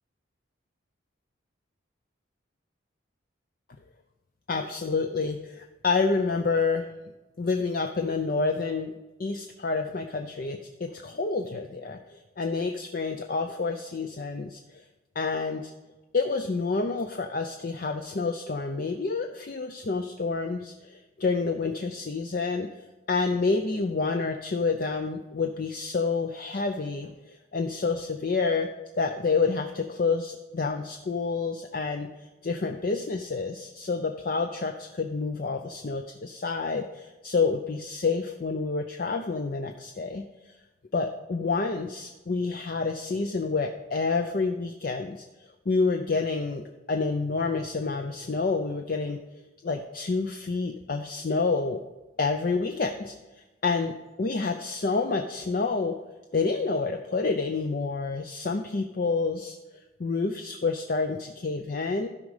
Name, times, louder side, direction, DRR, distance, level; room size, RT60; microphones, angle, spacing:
voice 1, 4.5-6.9 7.4-8.9 9.2-14.6 15.2-15.7 16.1-22.7 23.1-28.7 29.0-40.2 40.9-45.2 45.7-49.2 49.6-51.8 52.2-53.1 53.6-56.0 56.3-59.6 60.0-62.1, left 4 dB, 45° left, 5 dB, 0.5 m, -28 dB
13.0 x 5.2 x 4.9 m, 1.1 s
head